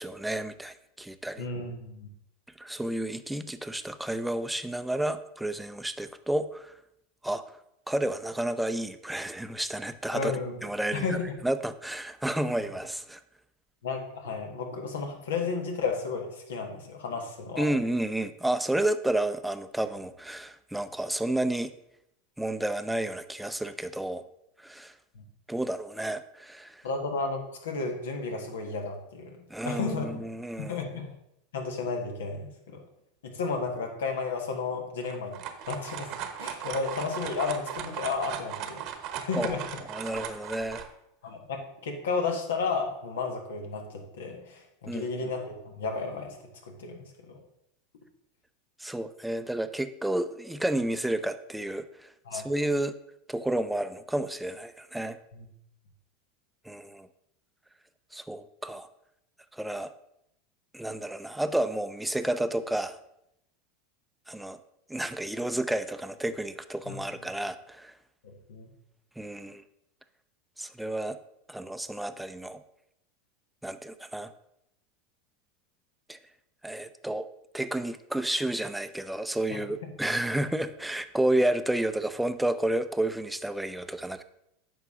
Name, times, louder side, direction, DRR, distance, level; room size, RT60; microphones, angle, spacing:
voice 1, 0.0-1.5 2.6-6.7 7.2-7.4 7.9-10.3 10.6-11.2 11.4-13.2 17.6-21.7 22.4-24.2 24.6-24.9 25.5-26.8 29.5-30.8 39.3-39.6 39.9-40.8 44.9-45.1 48.8-52.9 53.3-55.2 56.7-57.1 58.1-58.9 59.5-59.9 60.7-63.0 64.3-64.6 64.9-67.9 69.2-69.6 70.6-71.2 71.5-72.6 73.6-74.3 76.1-76.2 76.6-77.3 77.5-84.2, right 1 dB, 5° right, 11 dB, 0.5 m, -31 dB
voice 2, 1.4-2.1 10.1-10.6 10.9-11.3 12.6-12.7 13.8-17.7 25.2-25.3 26.8-30.2 30.6-31.1 31.5-32.8 33.2-38.8 39.2-39.6 41.2-46.4 46.7-47.4 52.3-52.5 55.3-55.5 66.9-67.2 68.2-68.7 79.8-80.0, left 4 dB, 85° left, 4 dB, 1.6 m, -33 dB
sound 1, 35.0-40.9, right 9 dB, 50° right, 1.0 m, -37 dB
9.0 x 5.8 x 3.7 m, 0.80 s
hypercardioid pair, 110°, 0 cm